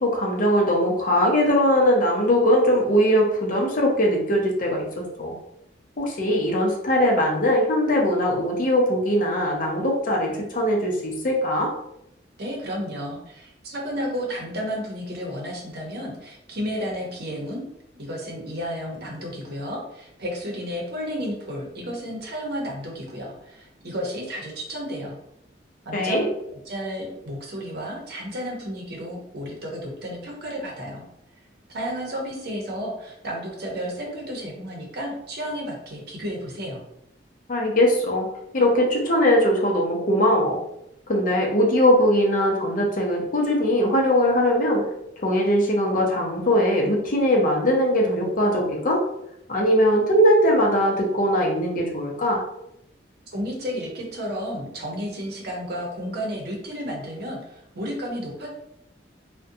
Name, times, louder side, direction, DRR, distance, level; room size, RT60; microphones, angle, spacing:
voice 1, 0.0-5.3 6.0-11.7 25.9-26.3 37.5-38.3 38.5-40.6 41.1-44.8 45.2-49.0 49.5-52.4, equal, 50° left, 0 dB, 0.6 m, -21 dB
voice 2, 12.4-17.6 18.0-25.2 25.9-26.3 26.5-31.1 31.7-36.8 53.3-58.5, equal, 60° right, -1 dB, 0.7 m, -32 dB
2.5 x 2.1 x 2.6 m, 0.79 s
head